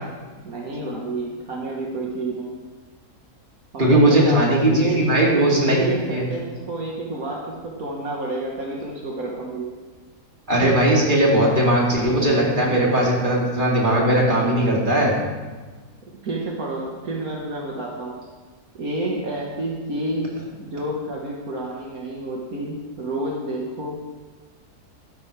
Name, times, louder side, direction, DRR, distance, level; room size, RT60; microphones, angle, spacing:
voice 1, 0.4-2.6 3.7-4.4 4.7-9.7 16.2-18.2 18.7-23.9, right 2 dB, 65° right, -2 dB, 2.0 m, -29 dB
voice 2, 3.8-6.2 10.5-15.1, right 1 dB, 30° right, -3 dB, 2.9 m, -18 dB
15.0 x 12.0 x 3.4 m, 1.3 s
omnidirectional pair, 1.6 m